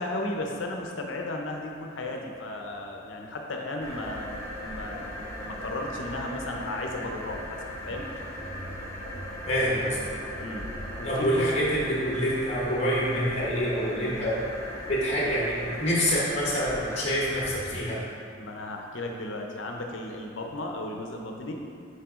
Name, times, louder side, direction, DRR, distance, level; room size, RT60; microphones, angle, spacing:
voice 1, 0.0-7.6 7.9-8.0 9.7-9.9 10.4-10.7 11.0-11.5 18.4-21.5, left 1 dB, 75° left, 2 dB, 0.7 m, -35 dB
sound 1, 3.8-17.8, equal, 15° left, 0.7 m, -38 dB
voice 2, 9.4-10.1 11.0-14.4 14.9-18.1, equal, 35° left, -5 dB, 1.0 m, -26 dB
5.9 x 4.7 x 3.6 m, 2.3 s
head